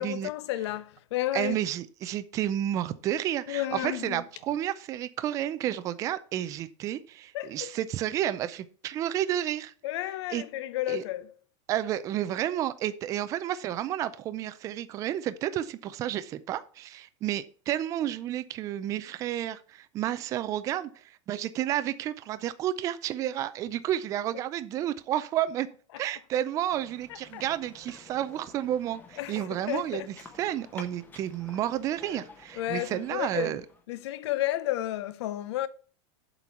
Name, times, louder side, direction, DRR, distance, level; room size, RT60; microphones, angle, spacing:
voice 1, 0.0-1.6 3.5-4.2 7.3-7.7 9.8-11.3 25.9-26.0 27.1-27.4 29.2-30.1 32.6-33.6 33.9-35.7, left 15 dB, 65° left, 0.7 m, -32 dB
voice 2, 1.3-9.7 10.3-10.4 10.9-11.0 11.7-25.7 26.0-30.0 30.4-33.6, right 12 dB, 20° right, 0.4 m, -31 dB
sound 1, 26.7-33.9, left 4 dB, 10° left, 0.9 m, -51 dB
7.7 x 4.5 x 7.0 m
supercardioid pair, 170°, 15 cm